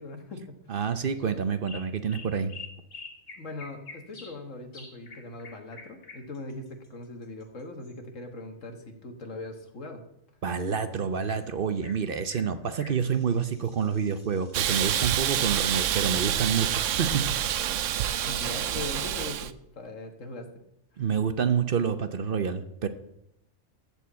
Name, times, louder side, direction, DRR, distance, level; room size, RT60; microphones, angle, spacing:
voice 1, 0.0-0.6 3.4-10.0 18.3-20.5 20.9-21.0, left 2 dB, 85° left, 5 dB, 1.8 m, -40 dB
voice 2, 0.7-2.5 10.4-17.2 21.0-22.9, right 6 dB, 50° right, 10 dB, 0.8 m, -28 dB
sound 1, 1.1-1.3 1.6-4.4 4.7-7.9 11.3-11.4 11.8-12.0 12.3-15.2 18.2-18.3 18.9-19.1, left 4 dB, 60° left, 2.0 m, -48 dB
Hiss, 14.5-19.5, right 11 dB, 85° right, 1.0 m, -27 dB
14.0 x 4.6 x 8.4 m, 0.82 s
omnidirectional pair, 1.3 m